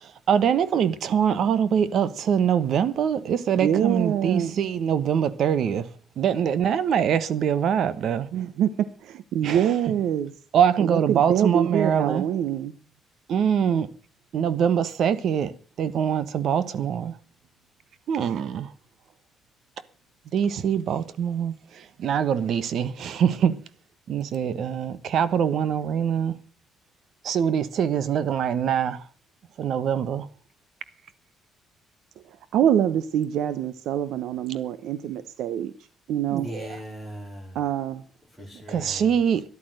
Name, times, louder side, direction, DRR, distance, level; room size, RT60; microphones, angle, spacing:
voice 1, 0.0-5.9 6.2-8.3 9.4-9.7 10.5-12.2 13.3-13.9 14.3-15.5 15.8-17.1 18.1-18.7 20.3-23.6 24.1-26.4 27.2-29.0 29.6-30.3 36.3-36.7 38.7-39.4, right 8 dB, 55° right, 1.1 m, -24 dB
voice 2, 3.5-4.5 8.3-10.3 10.8-12.7 32.5-35.7 36.1-36.5 37.5-38.0, right 10 dB, 75° right, 0.8 m, -25 dB
voice 3, 36.4-37.6 38.3-39.2, equal, 10° right, 3.6 m, -39 dB
13.0 x 11.0 x 6.4 m
cardioid pair, 145°, 0 cm